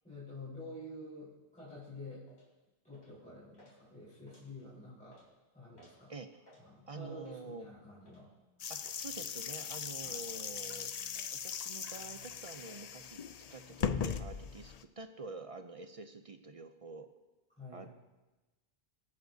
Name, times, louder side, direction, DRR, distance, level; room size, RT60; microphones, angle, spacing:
voice 1, 0.0-2.2 2.8-5.2 5.5-6.1 6.6-8.3 10.0-10.2 17.6-17.9, left 2 dB, 5° left, -10 dB, 4.2 m, -49 dB
sound 1, 2.3-2.5 2.9-3.2 3.5-3.8 4.2-4.7 5.0-5.3 5.8-6.0 6.3-6.6 7.2-7.5 8.0-8.2 8.8-9.0 9.3-9.7 10.2-10.4 10.9-11.5 11.9-12.3 12.7-12.8 13.1-13.6, equal, 85° left, 4.1 m, -62 dB
voice 2, 6.1-6.4 6.9-7.7 8.7-10.9 11.3-13.2 13.5-17.1 17.7-17.9, right 3 dB, 40° right, 8 dB, 0.5 m, -47 dB
sound 2, 8.6-14.8, left 7 dB, 50° left, 0.5 m, -39 dB
24.0 x 9.6 x 2.7 m, 1.1 s
omnidirectional pair, 1.1 m